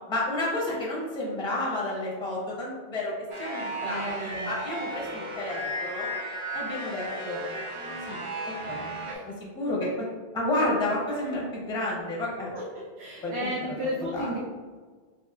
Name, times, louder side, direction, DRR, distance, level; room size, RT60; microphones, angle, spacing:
voice 1, 0.1-3.1 3.4-6.1 6.5-7.4 8.1-8.2 8.7-8.8 9.5-9.9 10.3-12.5 13.2-13.5 14.1-14.3, left 1 dB, 5° left, -4 dB, 0.5 m, -30 dB
sound 1, 3.3-9.1, right 1 dB, 45° right, 0.5 m, -35 dB
voice 2, 3.8-4.5 9.1-9.2 12.5-14.4, equal, 90° right, -4 dB, 0.9 m, -34 dB
3.6 x 3.1 x 2.2 m, 1.4 s
omnidirectional pair, 1.1 m